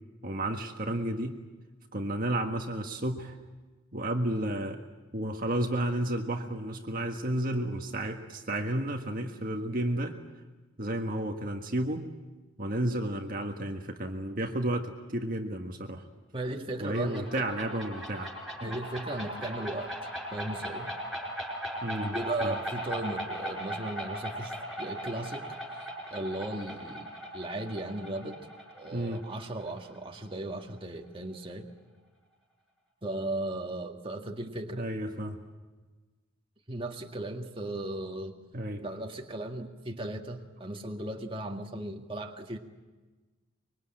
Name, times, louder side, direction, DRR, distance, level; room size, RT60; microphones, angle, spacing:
voice 1, 0.2-1.4 1.9-3.4 3.9-4.8 5.1-10.2 10.8-12.1 12.6-16.0 16.8-18.3 21.8-22.6 28.9-29.2 34.8-35.4 38.5-38.8, right 1 dB, 40° right, 3 dB, 1.6 m, -32 dB
voice 2, 16.3-17.4 18.6-19.9 20.3-20.9 22.0-25.5 25.8-27.1 27.3-28.4 28.7-31.7 33.0-34.9 36.7-38.4 38.8-42.6, right 1 dB, 25° right, 2 dB, 1.8 m, -36 dB
sound 1, 16.9-30.3, equal, ahead, 5.1 m, -38 dB
25.0 x 23.0 x 8.8 m, 1.3 s
head